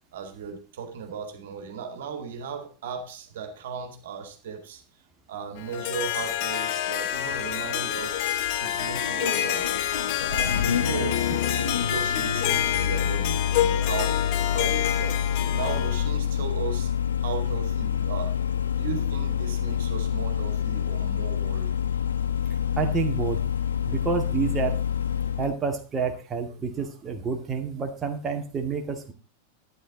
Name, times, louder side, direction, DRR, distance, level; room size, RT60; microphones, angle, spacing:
voice 1, 0.1-4.8 5.3-8.3 8.5-9.7 10.3-15.2 15.5-16.9 17.2-18.4 18.7-21.8 26.8-26.9, right 6 dB, 60° right, 6 dB, 2.3 m, -36 dB
Harp, 5.6-16.1, left 11 dB, 45° left, 1.2 m, -28 dB
Engine starting, 7.2-25.5, left 8 dB, 70° left, 0.9 m, -28 dB
voice 2, 22.8-23.4 23.8-24.7 25.4-29.1, right 5 dB, 20° right, 2 dB, 2.0 m, -29 dB
12.5 x 9.9 x 4.0 m, 0.35 s
figure-of-eight pair, 90°, 0 cm